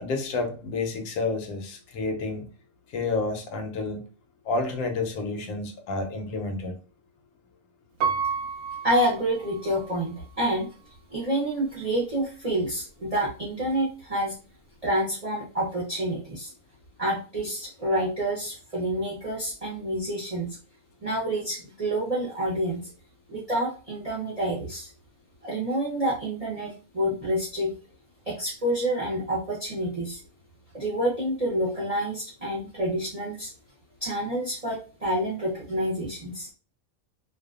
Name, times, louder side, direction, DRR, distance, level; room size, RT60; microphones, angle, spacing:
voice 1, 0.0-2.5 2.9-4.0 4.4-6.7, left 3 dB, 80° left, 1.1 m, -30 dB
Piano, 8.0-10.0 10.5-10.6, right 6 dB, 75° right, 0.9 m, -30 dB
voice 2, 8.8-10.7 11.1-14.3 14.8-16.5 17.0-20.6 21.0-22.8 23.3-24.9 25.4-27.7 28.3-30.2 30.7-33.5 34.0-36.5, right 1 dB, 40° right, 0.6 m, -28 dB
2.6 x 2.2 x 2.4 m
omnidirectional pair, 1.5 m